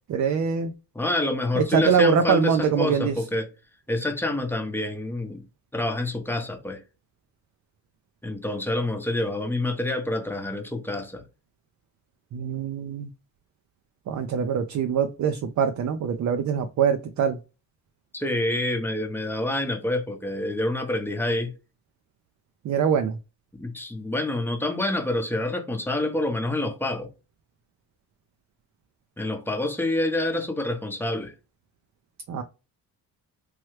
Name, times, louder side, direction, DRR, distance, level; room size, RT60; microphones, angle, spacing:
voice 1, 0.1-0.7 1.6-3.2 12.3-13.1 14.1-17.4 22.6-23.2 32.3-32.4, right 6 dB, 45° right, 0.5 m, -23 dB
voice 2, 0.9-3.5 3.9-5.4 5.7-6.8 8.2-11.2 18.1-21.5 23.6-27.1 29.2-31.3, left 1 dB, 5° left, 0.8 m, -27 dB
3.1 x 2.3 x 3.1 m
supercardioid pair, 75°, 40 cm